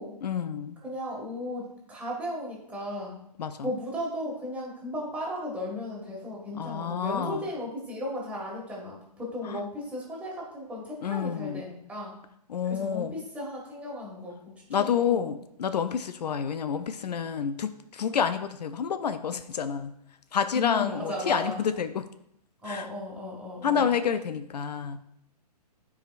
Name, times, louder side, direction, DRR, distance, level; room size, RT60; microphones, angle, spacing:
voice 1, 0.2-0.8 3.4-3.7 6.5-7.5 9.4-9.6 11.0-11.7 12.5-13.1 14.7-19.9 20.3-22.1 22.6-22.9 23.6-25.0, left 7 dB, 75° left, 10 dB, 0.5 m, -29 dB
voice 2, 0.8-3.2 3.6-12.2 12.7-14.4 14.8-15.2 20.5-21.6 22.6-23.9, left 1 dB, 5° right, -4 dB, 1.9 m, -35 dB
11.0 x 4.8 x 2.5 m, 0.75 s
hypercardioid pair, 140°, 21 cm